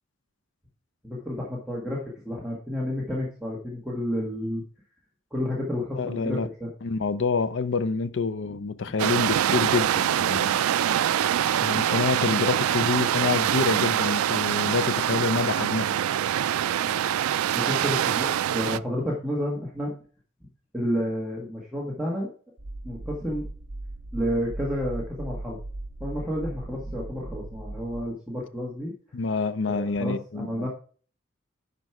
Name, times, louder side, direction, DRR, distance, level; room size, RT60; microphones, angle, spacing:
voice 1, 1.0-4.6 5.3-6.7 8.4-8.6 17.5-19.9 20.7-22.3 22.8-23.5 24.1-25.6 26.0-28.9 29.7-30.7, equal, 5° right, 1.7 m, -30 dB
voice 2, 6.0-6.5 6.8-10.5 11.6-16.0 29.1-30.7, left 4 dB, 60° left, 0.5 m, -27 dB
sound 1, 9.0-18.8, right 10 dB, 90° right, 0.3 m, -24 dB
sound 2, 22.6-28.0, right 2 dB, 55° right, 0.8 m, -38 dB
10.5 x 5.2 x 4.7 m
head